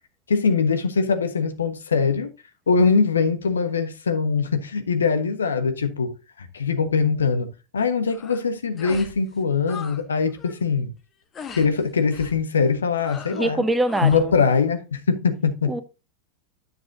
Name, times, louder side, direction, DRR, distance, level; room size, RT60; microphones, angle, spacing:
voice 1, 0.3-2.3 2.7-10.9 11.6-13.6 14.0-15.8, left 5 dB, 70° left, 1.2 m, -22 dB
sound 1, 8.1-8.4 8.8-9.2 9.4-10.0 10.3-10.6 11.3-11.7 12.1-12.4 13.0-13.5 13.8-14.3, left 6 dB, 25° left, 1.2 m, -39 dB
voice 2, 13.3-14.3 15.7-15.8, right 1 dB, 10° right, 0.9 m, -23 dB
9.8 x 6.9 x 2.7 m
figure-of-eight pair, 90°, 0 cm